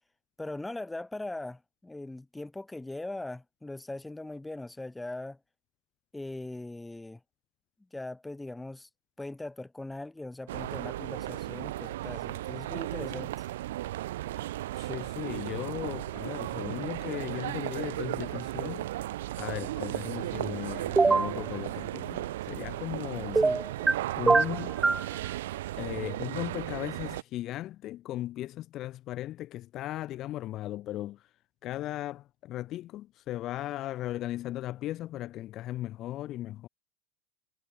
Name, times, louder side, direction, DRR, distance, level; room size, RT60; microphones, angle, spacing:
voice 1, 0.4-5.4 6.1-7.2 7.9-8.9 9.2-13.5 23.3-23.6, left 2 dB, 10° left, 1.9 m, -40 dB
sound 1, 10.5-27.2, right 15 dB, 80° right, 1.3 m, -35 dB
voice 2, 14.7-18.9 19.3-23.5 24.2-24.7 25.8-31.3 31.6-36.7, left 14 dB, 45° left, 2.7 m, -37 dB
sound 2, 21.0-21.3 23.4-23.9 24.3-25.1, right 3 dB, 15° right, 0.9 m, -22 dB
hypercardioid pair, 100°, 0 cm